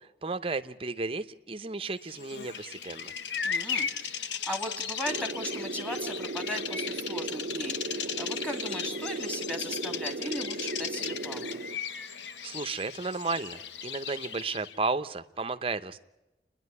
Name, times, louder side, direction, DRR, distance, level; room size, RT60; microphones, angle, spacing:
voice 1, 0.0-3.1 12.4-16.0, right 3 dB, 30° right, 10 dB, 0.8 m, -33 dB
Bird vocalization bird call bird song, 2.1-14.8, left 7 dB, 85° left, 0.8 m, -36 dB
voice 2, 3.4-11.6, equal, 5° left, 4 dB, 2.5 m, -38 dB
sound 1, 5.0-11.8, right 2 dB, 65° right, 0.7 m, -37 dB
29.0 x 10.5 x 9.5 m, 0.97 s
head